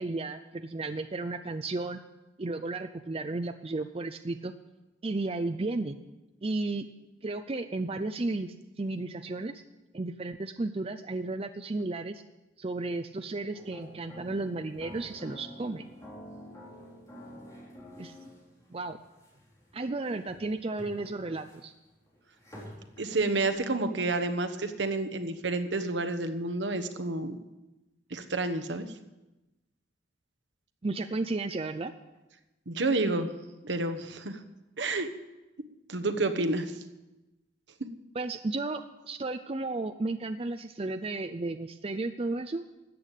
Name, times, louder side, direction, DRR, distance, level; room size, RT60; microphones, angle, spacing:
voice 1, 0.0-2.0 2.4-4.5 5.0-6.0 6.4-6.9 7.2-9.6 9.9-12.2 12.6-15.9 18.0-18.2 18.7-19.0 19.7-21.7 30.8-31.9 38.1-38.8 39.1-42.6, right 2 dB, 30° right, 9 dB, 0.5 m, -33 dB
sound 1, 13.5-23.5, left 1 dB, 20° left, 3.7 m, -49 dB
voice 2, 23.0-27.4 28.1-28.8 32.7-33.3 33.6-34.4 34.8-35.1 35.9-36.7, right 2 dB, 70° right, 9 dB, 1.2 m, -29 dB
13.5 x 8.4 x 9.0 m, 1.0 s
head